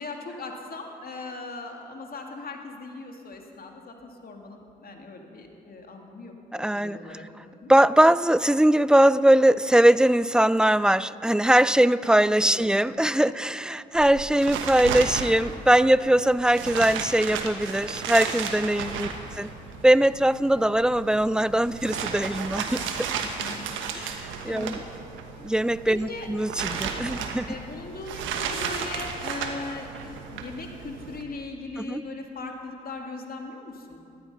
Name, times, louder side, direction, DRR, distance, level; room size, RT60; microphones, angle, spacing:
voice 1, 0.0-7.7 12.4-12.7 13.1-13.2 18.6-19.0 23.2-23.6 24.5-24.7 25.9-26.3 27.5-34.0, left 3 dB, 50° left, 2 dB, 2.4 m, -39 dB
voice 2, 6.5-7.0 7.7-19.1 19.4-19.5 19.8-23.1 23.9-24.2 24.4-24.8 25.4-27.5 31.8-32.0, right 1 dB, 5° right, 18 dB, 0.4 m, -21 dB
sound 1, 13.9-31.2, right 6 dB, 75° right, 1.3 m, -34 dB
17.0 x 13.0 x 5.6 m, 2.6 s
hypercardioid pair, 45°, 20 cm